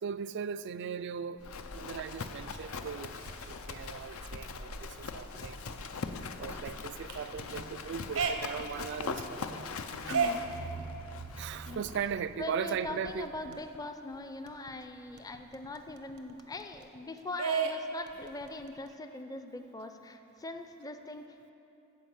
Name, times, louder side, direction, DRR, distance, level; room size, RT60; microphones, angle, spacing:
voice 1, 0.0-3.2 3.5-5.6 6.4-9.6 10.1-10.2 11.4-13.6, right 7 dB, 55° right, 0.3 m, -38 dB
Livestock farm animals working animals, 1.4-12.2, left 4 dB, 75° left, 0.6 m, -41 dB
sound 1, 2.3-13.8 14.1-14.2 14.5-17.0 17.4-18.9, right 5 dB, 90° right, 0.8 m, -38 dB
voice 2, 10.1-10.4 11.7-11.8 12.4-21.5, left 2 dB, 15° left, 0.5 m, -41 dB
14.5 x 4.9 x 8.1 m
head